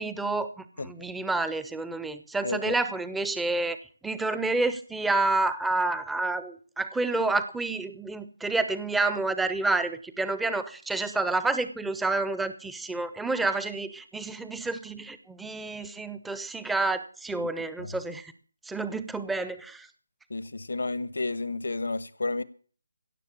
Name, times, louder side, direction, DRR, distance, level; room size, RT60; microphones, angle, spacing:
voice 1, 0.0-3.8 4.0-18.3 18.7-19.9, right 3 dB, 5° right, 0.6 m, -29 dB
voice 2, 2.4-2.7 17.4-17.5 17.8-18.0 20.3-22.4, left 3 dB, 80° left, 1.3 m, -31 dB
16.5 x 7.1 x 8.4 m
hypercardioid pair, 170°, 0 cm